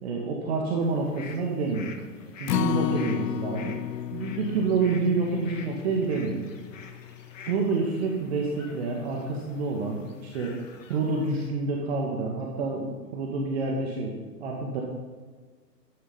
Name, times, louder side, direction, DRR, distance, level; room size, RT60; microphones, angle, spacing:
voice 1, 0.0-1.9 2.4-3.8 4.1-6.4 7.4-10.6 10.9-14.1 14.4-14.8, right 3 dB, 40° right, -1 dB, 2.0 m, -28 dB
sound 1, 0.8-11.5, left 5 dB, 50° left, 1.9 m, -48 dB
Acoustic guitar, 2.5-8.8 9.2-9.3 9.7-9.8, left 11 dB, 75° left, 0.5 m, -33 dB
13.0 x 11.0 x 5.6 m, 1.5 s
figure-of-eight pair, 135°, 50 cm